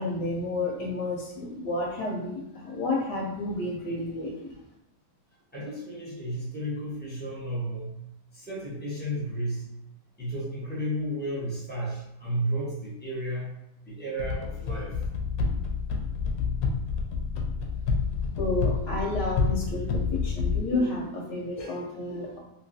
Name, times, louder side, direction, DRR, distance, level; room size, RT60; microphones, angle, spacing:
voice 1, 0.0-4.5 18.4-22.4, left 2 dB, 85° left, -2 dB, 1.2 m, -31 dB
voice 2, 5.5-8.0 8.3-9.6 10.2-13.5 13.8-15.0, right 1 dB, 10° left, -7 dB, 0.8 m, -33 dB
sound 1, 14.2-20.6, left 5 dB, 70° left, 0.9 m, -28 dB
3.0 x 2.8 x 2.6 m, 0.85 s
omnidirectional pair, 1.8 m